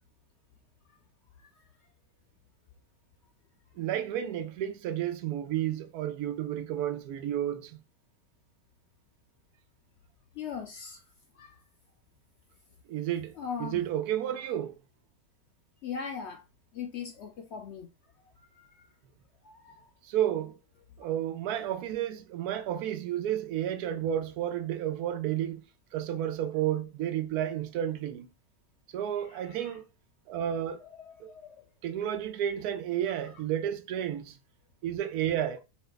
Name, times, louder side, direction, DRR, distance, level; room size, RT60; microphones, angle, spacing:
voice 1, 3.8-7.8 12.9-13.3 13.6-14.8 20.1-20.6 21.0-25.6 25.9-28.3 28.9-29.8 30.3-30.8 31.2-31.3 31.8-34.4 34.8-35.6, right 11 dB, 90° right, 1.1 m, -31 dB
voice 2, 10.4-11.0 11.4-11.6 13.3-13.8 15.8-16.4 16.7-17.9 18.6-18.9 19.4-19.8 29.3-29.7 30.8-31.6, left 6 dB, 70° left, 0.7 m, -40 dB
4.1 x 2.3 x 3.8 m
omnidirectional pair, 1.6 m